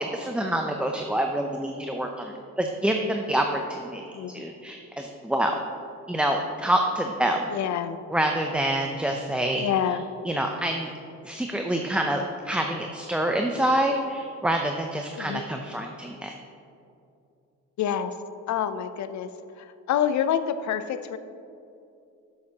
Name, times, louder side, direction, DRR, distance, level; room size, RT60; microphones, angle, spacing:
voice 1, 0.0-5.5 6.1-7.5 8.1-9.6 10.2-10.9 11.2-16.3, right 1 dB, 5° right, 2 dB, 0.5 m, -27 dB
voice 2, 4.1-4.5 7.5-8.0 9.6-10.1 15.2-15.4 17.8-18.1 18.5-19.3 19.9-21.2, left 9 dB, 65° left, 12 dB, 0.6 m, -27 dB
13.0 x 6.4 x 2.9 m, 2.6 s
cardioid pair, 90°, 30 cm